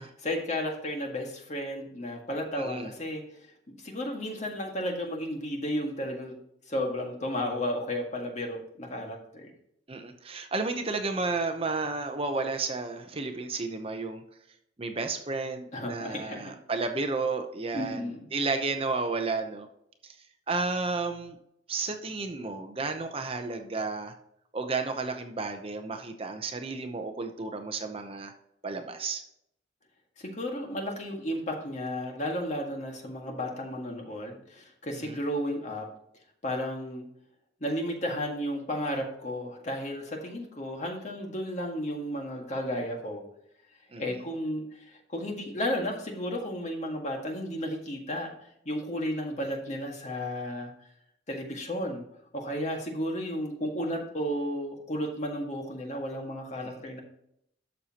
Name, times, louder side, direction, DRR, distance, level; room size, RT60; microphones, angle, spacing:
voice 1, 0.0-3.2 3.8-6.4 6.7-9.5 15.7-16.5 17.7-18.3 30.2-35.9 36.4-37.0 37.6-43.2 44.0-50.7 51.3-52.0 52.3-57.0, equal, 40° left, 2 dB, 1.8 m, -33 dB
voice 2, 2.5-2.9 9.9-14.2 14.8-19.7 20.0-20.2 20.5-21.4 21.7-24.1 24.5-28.3 28.6-29.2 35.0-35.2 43.9-44.0 56.6-56.7, right 3 dB, 30° right, 6 dB, 0.8 m, -32 dB
12.0 x 6.5 x 2.9 m, 0.74 s
head